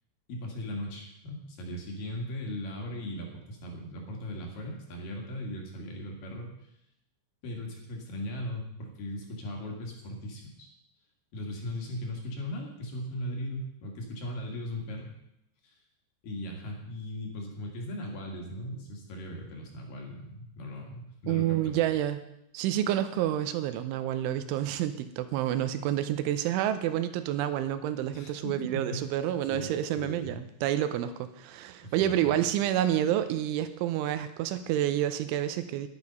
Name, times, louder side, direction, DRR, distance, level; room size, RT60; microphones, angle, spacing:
voice 1, 0.3-6.5 7.4-10.7 11.3-15.1 15.6-15.7 16.2-21.8 28.1-29.1 29.5-29.7 30.0-30.4 31.8-32.4, left 1 dB, 55° left, 1 dB, 3.1 m, -38 dB
voice 2, 21.3-22.2 22.5-35.9, right 12 dB, 85° right, 11 dB, 3.0 m, -29 dB
11.5 x 10.5 x 5.4 m, 0.81 s
omnidirectional pair, 5.8 m